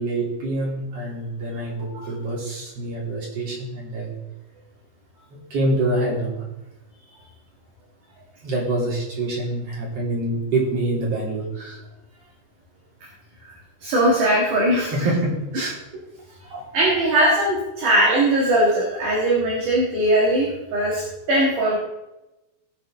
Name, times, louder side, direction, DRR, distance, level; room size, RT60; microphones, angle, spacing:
voice 1, 0.0-4.1 5.3-6.4 8.4-11.8 14.9-15.8 16.5-16.6, right 2 dB, 35° right, -5 dB, 4.1 m, -26 dB
voice 2, 13.8-14.9 16.7-21.8, right 1 dB, 55° right, -4 dB, 2.7 m, -20 dB
18.0 x 7.0 x 3.8 m, 0.98 s
omnidirectional pair, 5.6 m